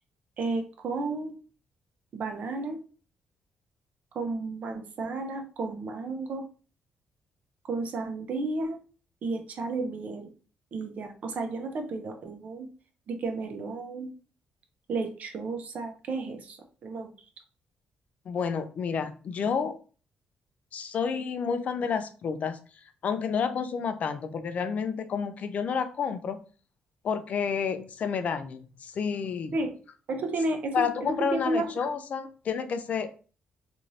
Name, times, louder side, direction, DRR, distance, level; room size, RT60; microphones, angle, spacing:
voice 1, 0.4-1.4 2.1-2.8 4.1-6.5 7.6-8.8 9.2-10.3 10.7-12.7 13.1-14.1 14.9-17.1 29.5-29.7 30.1-31.7, right 3 dB, 60° right, 4 dB, 0.7 m, -32 dB
voice 2, 18.3-19.8 20.7-22.6 23.0-26.4 27.0-29.5 30.7-33.1, left 6 dB, 55° left, 10 dB, 0.4 m, -30 dB
2.6 x 2.6 x 3.1 m, 0.37 s
cardioid pair, 120°, 3 cm